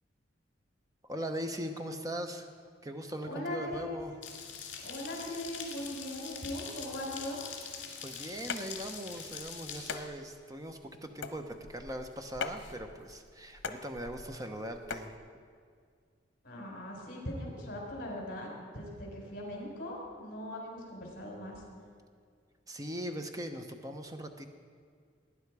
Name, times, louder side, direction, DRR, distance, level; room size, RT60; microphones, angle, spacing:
voice 1, 1.0-2.5 2.8-4.1 8.0-15.1 22.7-24.4, right 1 dB, 20° right, 5 dB, 0.8 m, -40 dB
voice 2, 3.2-4.0 4.8-7.4 16.4-21.6, left 1 dB, 50° left, -2 dB, 4.4 m, -40 dB
sound 1, 4.2-10.0, left 6 dB, 70° left, 2.4 m, -44 dB
sound 2, 8.5-15.1, left 5 dB, 90° left, 0.8 m, -43 dB
18.5 x 9.8 x 4.8 m, 2.1 s
head